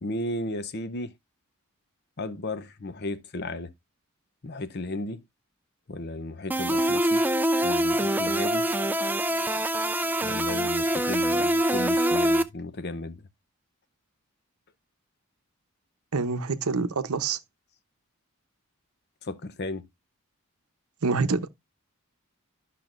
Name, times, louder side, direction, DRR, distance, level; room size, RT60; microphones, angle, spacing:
voice 1, 0.0-1.1 2.2-3.7 4.4-5.2 5.9-7.3 7.6-8.7 10.2-13.3 19.2-19.9, left 2 dB, 50° left, 0.7 m, -34 dB
sound 1, 6.5-12.4, right 1 dB, 10° right, 0.4 m, -24 dB
voice 2, 16.1-17.4 21.0-21.5, right 4 dB, 80° right, 0.8 m, -26 dB
12.5 x 5.8 x 2.5 m
head